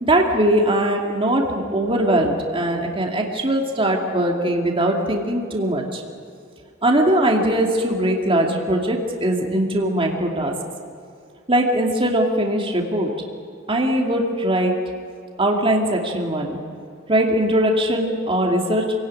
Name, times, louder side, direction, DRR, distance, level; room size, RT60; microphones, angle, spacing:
voice 1, 0.0-6.0 6.8-10.5 11.5-13.1 13.7-14.7 15.4-16.6 17.1-18.8, right 1 dB, 25° right, 1 dB, 2.6 m, -20 dB
27.5 x 17.5 x 9.8 m, 2.4 s
head